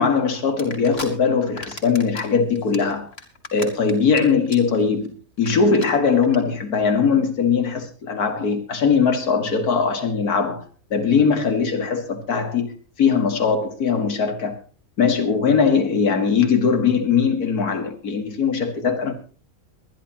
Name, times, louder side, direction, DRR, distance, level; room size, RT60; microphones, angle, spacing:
voice 1, 0.0-3.1 3.5-5.1 5.4-10.6 10.9-12.7 13.0-14.6 15.0-19.1, left 5 dB, 80° left, 2.3 m, -20 dB
sound 1, 0.6-1.1 1.4-2.3 2.6-4.2 4.5-4.8 5.0-5.1 5.4-5.5 5.7-5.9 6.2-6.4, left 3 dB, 45° left, 2.7 m, -35 dB
23.0 x 11.0 x 2.9 m
omnidirectional pair, 1.6 m